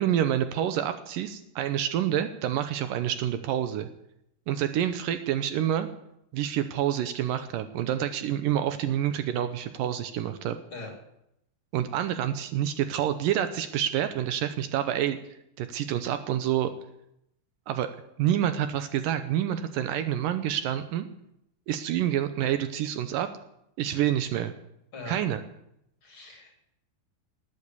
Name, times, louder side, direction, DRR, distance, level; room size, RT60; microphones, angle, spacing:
voice 1, 0.0-3.9 4.5-5.9 6.3-10.6 11.7-15.2 15.6-16.7 17.7-17.9 18.2-21.1 21.7-23.3 23.8-24.5 25.1-25.4, right 11 dB, 75° right, 10 dB, 2.4 m, -27 dB
voice 2, 26.0-26.7, left 2 dB, 35° left, 2 dB, 4.3 m, -42 dB
19.0 x 8.5 x 8.3 m, 0.78 s
omnidirectional pair, 4.1 m